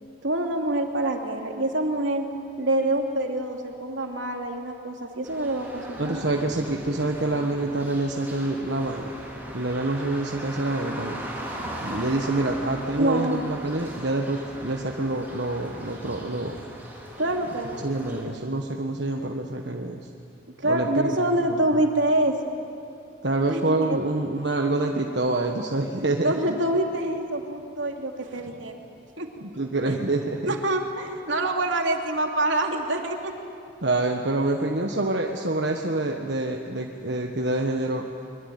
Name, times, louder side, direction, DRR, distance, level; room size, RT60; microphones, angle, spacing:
voice 1, 0.2-2.3 2.6-6.2 13.0-13.4 17.2-17.9 20.6-22.3 23.5-24.0 26.2-28.7 29.2-29.3 29.8-30.0 30.5-33.3, right 1 dB, 80° right, 3 dB, 2.8 m, -26 dB
sound 1, 5.2-18.2, equal, 10° right, 4.8 m, -38 dB
voice 2, 6.0-9.1 9.5-11.2 11.8-16.6 17.8-20.0 20.6-21.1 21.5-21.6 23.2-26.6 29.4-30.4 33.8-38.0, right 2 dB, 65° right, 2 dB, 1.5 m, -26 dB
24.0 x 23.0 x 9.5 m, 2.7 s
head